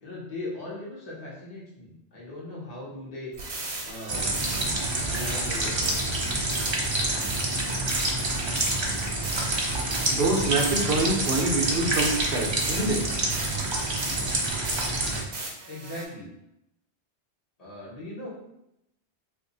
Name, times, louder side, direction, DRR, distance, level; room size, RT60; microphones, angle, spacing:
voice 1, 0.0-3.3 3.8-4.4 5.0-6.0 15.7-16.3 17.6-18.3, left 1 dB, 40° left, -6 dB, 1.0 m, -39 dB
sound 1, 3.3-16.1, right 2 dB, 85° right, 1.1 m, -38 dB
sound 2, 4.1-15.2, right 2 dB, 35° right, 0.4 m, -27 dB
voice 2, 10.1-13.1, right 2 dB, 65° right, -1 dB, 0.9 m, -26 dB
2.7 x 2.6 x 3.9 m, 0.82 s
omnidirectional pair, 1.1 m